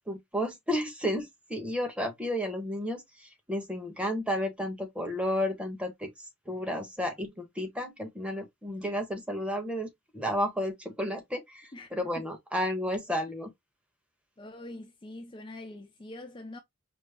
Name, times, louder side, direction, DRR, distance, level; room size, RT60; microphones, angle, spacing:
voice 1, 0.0-13.5, equal, 5° right, 0.9 m, -32 dB
voice 2, 14.4-16.6, left 1 dB, 25° left, 0.5 m, -44 dB
5.1 x 2.0 x 3.4 m
head